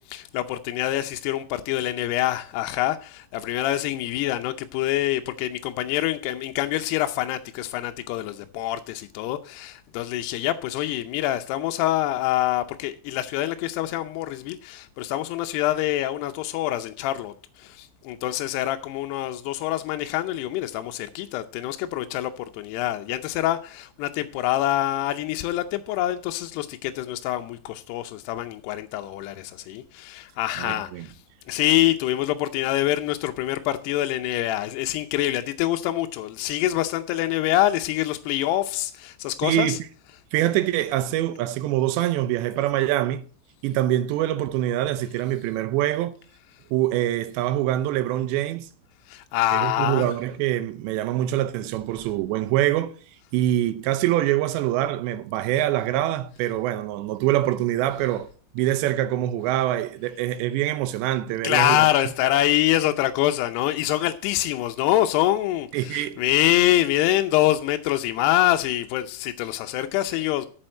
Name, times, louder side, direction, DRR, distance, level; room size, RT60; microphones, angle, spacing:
voice 1, 0.0-31.1 31.5-39.8 49.1-50.1 61.4-70.5, left 14 dB, 80° left, 2.5 m, -25 dB
voice 2, 30.6-31.1 39.4-39.8 40.3-43.3 43.6-46.2 46.7-48.7 49.5-52.9 53.3-58.3 58.5-61.9 65.7-66.2, right 13 dB, 80° right, 2.9 m, -24 dB
8.7 x 7.0 x 7.6 m
omnidirectional pair, 5.2 m